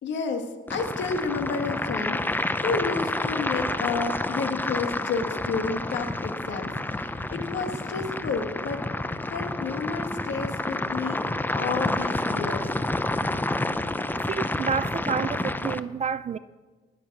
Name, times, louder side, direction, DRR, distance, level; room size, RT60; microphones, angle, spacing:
voice 1, 0.0-8.9 9.3-12.7, left 4 dB, 65° left, 1.7 m, -31 dB
sound 1, 0.7-15.8, left 2 dB, 10° left, 0.6 m, -29 dB
voice 2, 14.2-16.4, right 6 dB, 35° right, 0.4 m, -29 dB
20.0 x 7.3 x 6.0 m
cardioid pair, 90°, 20 cm